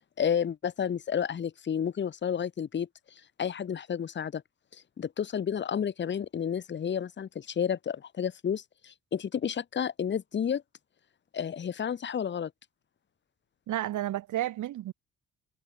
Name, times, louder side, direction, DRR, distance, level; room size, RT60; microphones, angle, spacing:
voice 1, 0.2-2.9 3.4-4.4 5.0-10.6 11.3-12.5, left 8 dB, 35° left, 1.0 m, -31 dB
voice 2, 13.7-14.9, right 13 dB, 80° right, 2.9 m, -31 dB
cardioid pair, 90°, 30 cm